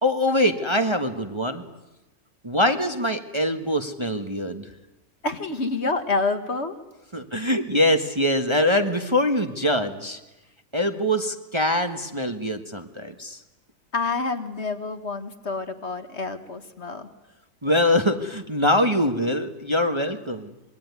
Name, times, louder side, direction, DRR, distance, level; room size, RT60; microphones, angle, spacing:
voice 1, 0.0-1.6 2.4-4.7 7.1-10.2 10.7-13.4 17.6-20.5, left 1 dB, 20° right, 6 dB, 1.4 m, -23 dB
voice 2, 5.2-6.8 13.9-17.1, left 3 dB, 45° left, 8 dB, 1.9 m, -28 dB
26.0 x 22.5 x 9.6 m, 0.96 s
omnidirectional pair, 1.6 m